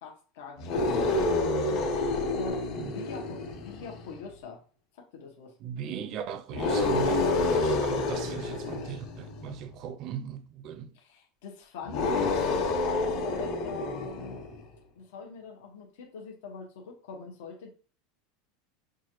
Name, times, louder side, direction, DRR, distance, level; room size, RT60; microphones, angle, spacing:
voice 1, 0.0-4.6 5.1-5.5 10.9-14.4 14.9-17.7, left 5 dB, 70° left, 1.1 m, -43 dB
sound 1, 0.6-4.1 6.5-9.6 11.8-14.6, left 3 dB, 55° left, 1.4 m, -28 dB
voice 2, 5.6-11.0, right 8 dB, 40° right, 0.5 m, -38 dB
5.9 x 2.5 x 3.0 m
supercardioid pair, 160°, 0 cm